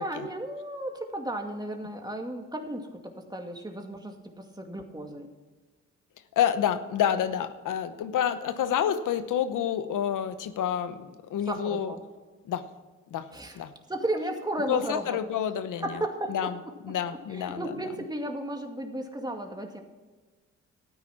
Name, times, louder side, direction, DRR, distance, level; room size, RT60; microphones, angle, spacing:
voice 1, 0.0-5.3 11.5-12.0 13.3-13.6 13.9-15.2 15.8-16.5 17.3-19.8, right 1 dB, 15° right, 3 dB, 2.3 m, -34 dB
voice 2, 6.4-11.9 12.4-12.7 13.1-13.3 13.5-13.7 14.7-16.0 16.3-16.6 16.8-17.8, left 9 dB, 80° left, 11 dB, 1.0 m, -28 dB
13.0 x 9.5 x 6.0 m, 1.3 s
cardioid pair, 60°, 31 cm